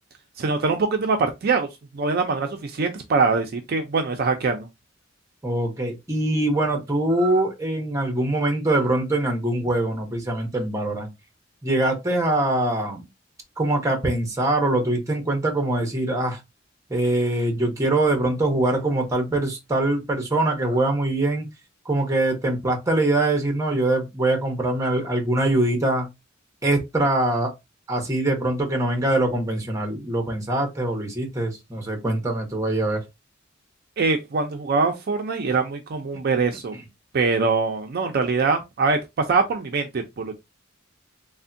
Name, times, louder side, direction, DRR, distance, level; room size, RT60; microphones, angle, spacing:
voice 1, 0.4-1.7 1.9-4.7 34.0-36.7 37.1-39.0 39.3-40.3, right 4 dB, 50° right, 0.4 m, -23 dB
voice 2, 5.4-11.1 11.6-13.0 13.6-16.4 16.9-21.5 21.9-26.1 26.6-27.5 27.9-33.0, right 2 dB, 15° right, 0.8 m, -23 dB
3.4 x 2.1 x 2.5 m
head